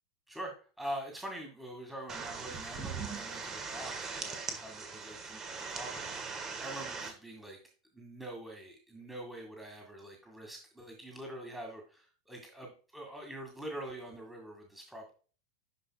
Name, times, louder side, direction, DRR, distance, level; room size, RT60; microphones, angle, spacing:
voice 1, 0.3-7.6 7.9-15.1, right 1 dB, 5° right, 1 dB, 2.1 m, -44 dB
sound 1, 2.1-7.1, right 5 dB, 25° right, 1.7 m, -40 dB
11.5 x 5.1 x 2.3 m, 0.37 s
figure-of-eight pair, 90°, 2 cm